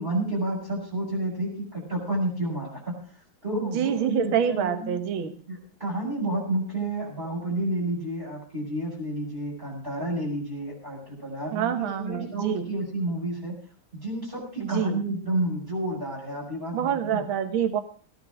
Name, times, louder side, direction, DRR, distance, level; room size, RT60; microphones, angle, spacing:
voice 1, 0.0-3.0 3.4-5.0 5.5-13.6 13.9-17.2, right 1 dB, 25° right, -6 dB, 6.9 m, -30 dB
voice 2, 3.6-5.3 11.5-12.7 14.6-15.0 16.7-17.8, right 9 dB, 70° right, 9 dB, 2.0 m, -26 dB
18.0 x 10.5 x 5.2 m, 0.42 s
omnidirectional pair, 2.4 m